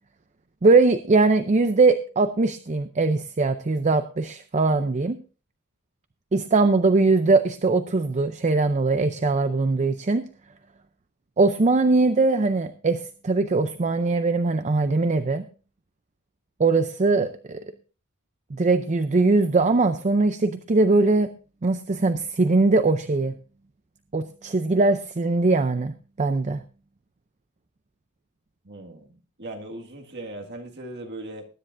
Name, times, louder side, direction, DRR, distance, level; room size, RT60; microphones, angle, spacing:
voice 1, 0.6-5.2 6.3-10.3 11.4-15.4 16.6-17.7 18.5-21.3 21.6-23.4 24.1-26.6, right 3 dB, 30° right, 0.5 m, -21 dB
voice 2, 28.6-31.5, right 1 dB, 50° right, 1.9 m, -38 dB
20.5 x 10.0 x 2.6 m
head